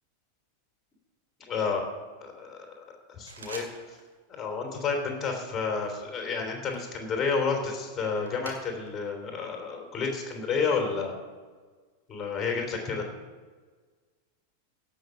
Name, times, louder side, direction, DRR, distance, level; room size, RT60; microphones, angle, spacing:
voice 1, 1.5-1.8 2.2-3.7 4.3-11.1 12.1-13.0, left 5 dB, 25° left, 2 dB, 3.3 m, -30 dB
sound 1, 3.3-4.2 4.4-4.8 5.3-9.1 9.4-10.9, right 3 dB, 65° right, 2.4 m, -49 dB
17.0 x 6.3 x 7.2 m, 1.4 s
figure-of-eight pair, 90°, 0 cm